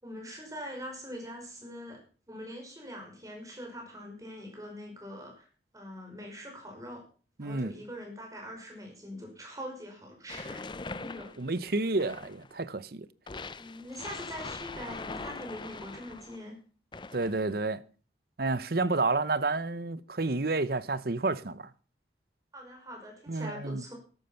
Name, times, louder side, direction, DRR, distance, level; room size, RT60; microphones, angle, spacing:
voice 1, 0.0-2.0 2.3-5.5 5.7-7.0 7.4-10.7 11.0-11.3 13.6-16.6 22.5-23.9, equal, 20° right, 5.5 m, -43 dB
voice 2, 7.4-7.7 11.4-13.1 17.1-17.8 18.4-21.7 23.3-23.8, right 3 dB, 55° right, 0.8 m, -30 dB
sound 1, 10.3-12.5 13.3-16.4 16.9-17.5, left 3 dB, 25° left, 0.6 m, -42 dB
13.5 x 12.0 x 5.7 m
head